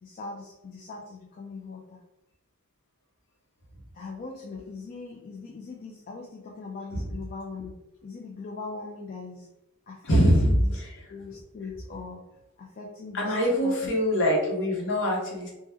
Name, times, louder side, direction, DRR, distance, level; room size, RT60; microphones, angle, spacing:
voice 1, 0.0-2.0 3.9-7.7 8.0-9.5 9.9-10.8 11.1-12.2 12.6-13.3 13.6-13.9, left 4 dB, 40° left, -1 dB, 0.4 m, -40 dB
voice 2, 10.0-10.9 13.1-15.5, equal, 60° left, -1 dB, 1.0 m, -23 dB
2.9 x 2.1 x 3.4 m, 0.93 s
head